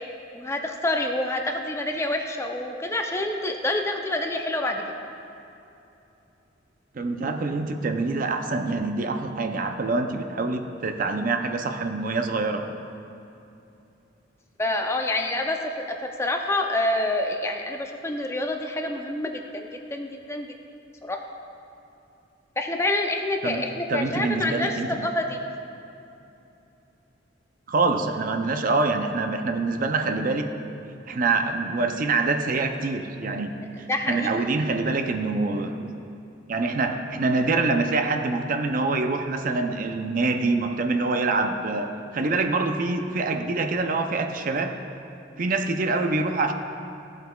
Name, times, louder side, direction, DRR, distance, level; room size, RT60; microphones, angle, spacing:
voice 1, 0.3-4.8 14.6-15.9 16.2-20.5 21.0-21.2 22.6-25.4 33.9-34.4, left 1 dB, 15° left, 3 dB, 0.5 m, -27 dB
voice 2, 6.9-12.7 23.4-23.6 23.9-25.1 27.7-30.5 31.1-35.9 36.5-44.7 45.4-46.5, right 3 dB, 45° right, 5 dB, 0.5 m, -25 dB
14.0 x 8.0 x 2.3 m, 2.8 s
head